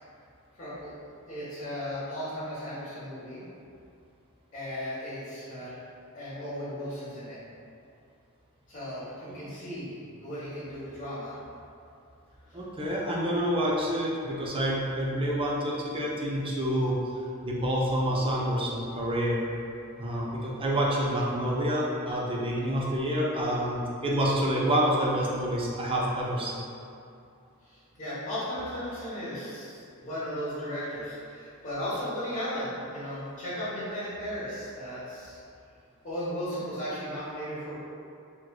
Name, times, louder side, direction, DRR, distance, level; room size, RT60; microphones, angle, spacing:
voice 1, 0.6-0.9 1.3-3.4 4.5-5.8 6.1-7.4 8.7-11.4 12.5-12.6 27.6-35.4 36.0-37.8, equal, 40° left, -15 dB, 0.9 m, -36 dB
voice 2, 12.5-17.0 17.4-19.4 20.0-26.7, equal, 25° right, -4 dB, 0.5 m, -28 dB
3.6 x 2.9 x 2.2 m, 2.5 s
head